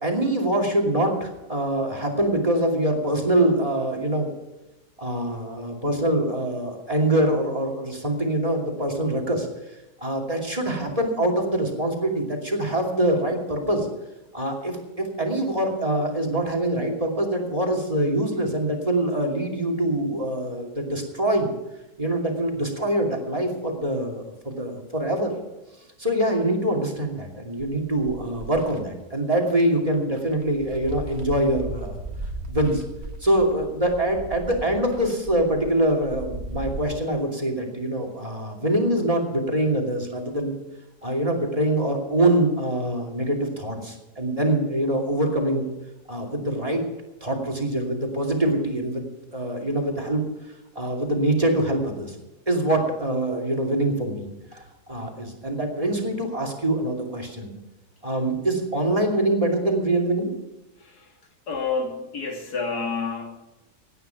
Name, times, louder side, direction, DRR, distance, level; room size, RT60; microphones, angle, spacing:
voice 1, 0.0-4.3 5.0-9.5 10.0-13.9 14.3-21.5 22.0-25.3 26.0-31.9 32.5-32.8 33.2-40.5 41.0-45.6 46.1-46.8 47.2-50.2 50.7-52.2 52.5-54.3 54.5-57.5 58.0-60.3, right 1 dB, 20° right, 3 dB, 2.7 m, -24 dB
sound 1, 27.6-28.8 29.5-29.6 29.9-36.8, right 2 dB, 40° right, 1.9 m, -37 dB
voice 2, 60.8-61.1 61.5-63.4, left 4 dB, 65° left, 2 dB, 2.8 m, -29 dB
17.0 x 10.0 x 5.9 m, 1.0 s
omnidirectional pair, 1.8 m